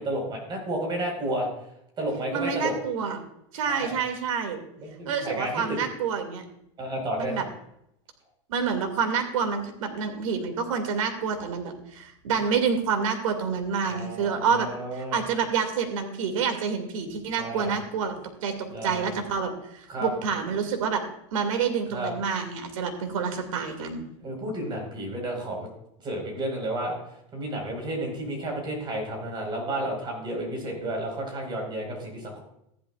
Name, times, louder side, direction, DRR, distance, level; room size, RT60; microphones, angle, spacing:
voice 1, 0.0-1.5 2.0-2.7 3.7-4.0 4.8-5.8 6.8-7.4 13.9-15.2 17.4-17.7 18.7-19.1 19.9-20.1 21.9-22.1 24.2-25.7 26.0-27.0 27.3-32.4, right 1 dB, 30° right, 1 dB, 4.6 m, -31 dB
voice 2, 2.3-3.2 3.5-4.6 5.1-6.4 7.2-7.4 8.5-14.7 14.9-21.0 21.3-24.0, right 6 dB, 85° right, 5 dB, 2.3 m, -28 dB
14.5 x 11.0 x 2.4 m, 0.76 s
supercardioid pair, 140°, 17 cm